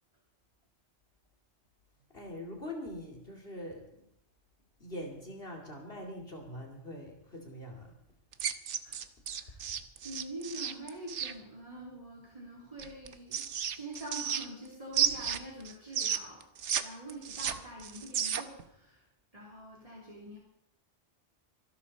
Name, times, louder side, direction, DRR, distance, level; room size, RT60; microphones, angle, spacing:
voice 1, 2.1-4.0 4.8-8.0, left 1 dB, 55° left, 1 dB, 2.9 m, -43 dB
sound 1, 8.3-11.3 12.8-14.7 14.9-16.8 17.1-18.6, right 8 dB, 85° right, 1.2 m, -33 dB
voice 2, 9.3-9.6 10.0-16.4 16.8-19.1 19.3-20.4, right 1 dB, 30° right, -4 dB, 3.3 m, -45 dB
25.0 x 11.5 x 4.2 m, 0.73 s
omnidirectional pair, 1.2 m